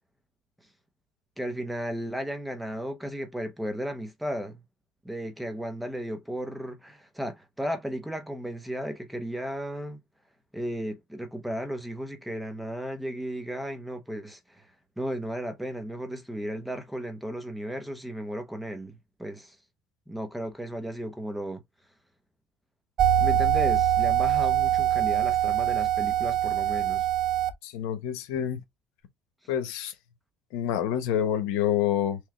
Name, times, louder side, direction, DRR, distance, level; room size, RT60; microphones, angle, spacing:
voice 1, 1.4-4.6 5.0-10.0 10.5-14.7 15.0-19.6 20.1-21.6 23.2-27.1, equal, ahead, 0.8 m, -34 dB
sound 1, 23.0-27.5, right 11 dB, 45° right, 0.6 m, -23 dB
voice 2, 27.6-28.6 29.5-29.9 30.5-32.2, left 10 dB, 85° left, 1.0 m, -27 dB
3.6 x 3.1 x 3.1 m
cardioid pair, 140°, 0 cm